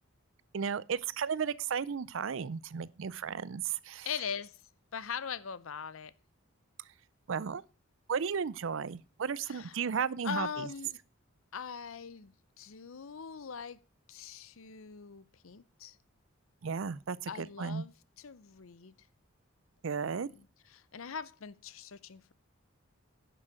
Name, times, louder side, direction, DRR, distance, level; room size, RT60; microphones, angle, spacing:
voice 1, 0.5-4.1 7.3-7.6 8.1-10.5 16.6-17.8 19.8-20.3, right 6 dB, 65° right, 0.5 m, -34 dB
voice 2, 4.0-4.6 4.9-6.1 9.4-9.8 10.2-11.0 11.5-13.8 14.1-16.0 17.3-18.9 20.0-22.3, left 6 dB, 75° left, 0.6 m, -41 dB
10.5 x 6.2 x 6.3 m
head